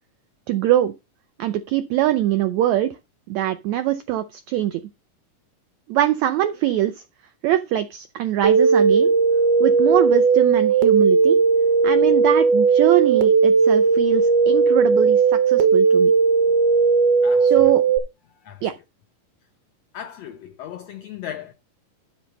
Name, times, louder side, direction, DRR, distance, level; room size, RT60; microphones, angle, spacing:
voice 1, 0.5-0.9 1.4-2.9 3.3-4.8 5.9-7.0 7.4-9.1 9.6-11.4 11.8-16.1 17.4-17.8 18.6-18.7, right 13 dB, 85° right, 1.6 m, -22 dB
sound 1, 8.4-18.0, right 5 dB, 65° right, 1.7 m, -17 dB
voice 2, 17.2-17.8 18.4-18.6 19.9-21.5, left 10 dB, 85° left, 1.4 m, -37 dB
7.6 x 6.5 x 5.2 m
omnidirectional pair, 3.9 m